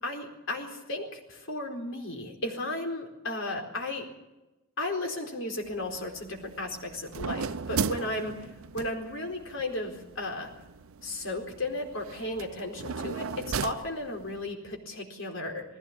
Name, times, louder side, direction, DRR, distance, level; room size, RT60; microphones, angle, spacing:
voice 1, 0.0-4.1 4.8-8.5 8.7-10.5 11.0-15.6, left 2 dB, 65° left, 2 dB, 4.3 m, -34 dB
sound 1, 5.6-14.5, right 5 dB, 80° right, 0.7 m, -37 dB
19.5 x 16.5 x 8.9 m, 1.0 s
head